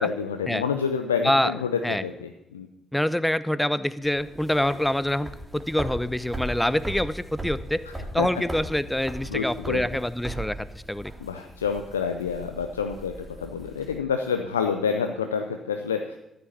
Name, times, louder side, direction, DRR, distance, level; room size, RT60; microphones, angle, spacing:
voice 1, 0.0-2.7 7.9-8.3 9.3-9.8 11.2-16.2, left 6 dB, 80° left, 6 dB, 0.5 m, -28 dB
voice 2, 2.9-5.3 5.5-7.8 8.1-11.1, left 1 dB, 5° left, 16 dB, 0.7 m, -25 dB
sound 1, 4.0-14.0, right 1 dB, 15° right, 2.3 m, -39 dB
13.5 x 7.8 x 7.0 m, 0.87 s
figure-of-eight pair, 40°, 0 cm